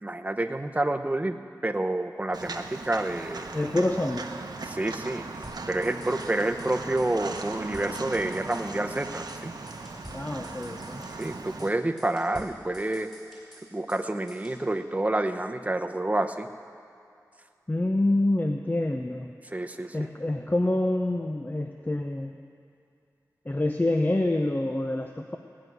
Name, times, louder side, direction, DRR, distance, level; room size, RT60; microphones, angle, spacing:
voice 1, 0.0-1.4 1.6-3.5 4.6-5.3 5.7-9.5 11.1-13.1 13.7-16.5 19.4-20.1, right 1 dB, 20° right, 5 dB, 0.9 m, -28 dB
Walk footsteps, 2.3-11.7, right 3 dB, 80° right, 0.9 m, -38 dB
voice 2, 3.5-4.3 10.1-11.1 17.7-19.3 19.9-22.3 23.5-25.4, left 1 dB, 25° left, 3 dB, 0.7 m, -26 dB
sound 1, 5.4-6.7 7.0-7.1 7.4-9.0 9.3-9.4 9.7-11.3 11.6-11.7 12.0-14.0 14.3-14.6, equal, 5° left, 4.5 m, -49 dB
18.5 x 6.2 x 9.5 m, 2.5 s
wide cardioid pair, 60°, 7 cm